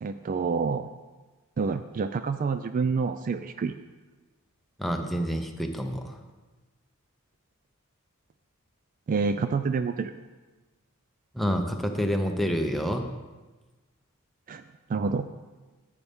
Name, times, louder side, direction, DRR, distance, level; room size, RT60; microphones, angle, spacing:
voice 1, 0.0-0.9 1.6-3.7 9.1-10.1 14.5-14.6 14.9-15.3, right 4 dB, 40° right, 10 dB, 0.3 m, -28 dB
voice 2, 4.8-6.2 11.3-13.1, equal, ahead, 3 dB, 0.7 m, -28 dB
10.5 x 8.9 x 3.5 m, 1.2 s
head